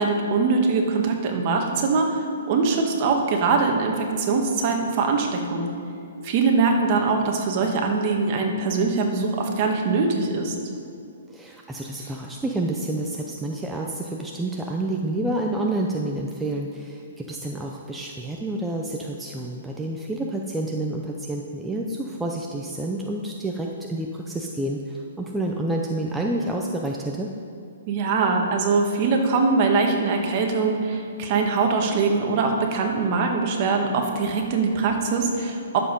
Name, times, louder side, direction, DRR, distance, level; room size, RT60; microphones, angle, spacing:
voice 1, 0.0-5.7 6.2-10.5 27.9-35.8, right 4 dB, 35° right, 2 dB, 1.5 m, -22 dB
voice 2, 11.3-27.3, right 1 dB, 5° right, -1 dB, 0.6 m, -29 dB
11.0 x 7.3 x 5.3 m, 2.5 s
hypercardioid pair, 155°, 0 cm